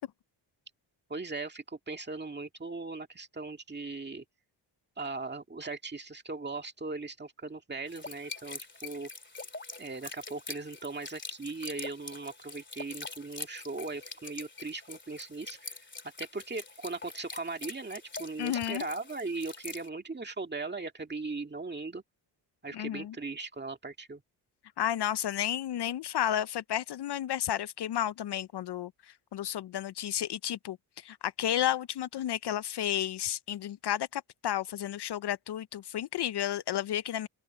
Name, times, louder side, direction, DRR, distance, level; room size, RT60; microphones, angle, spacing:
voice 1, 1.1-4.2 5.0-9.1 9.8-15.9 16.2-22.0 22.6-24.2, right 3 dB, 25° right, 2.0 m, -39 dB
sound 1, 7.9-19.9, left 3 dB, 25° left, 2.8 m, -44 dB
voice 2, 18.4-18.9 22.7-23.2 24.8-37.3, left 11 dB, 65° left, 0.5 m, -32 dB
open air
wide cardioid pair, 140°, 44 cm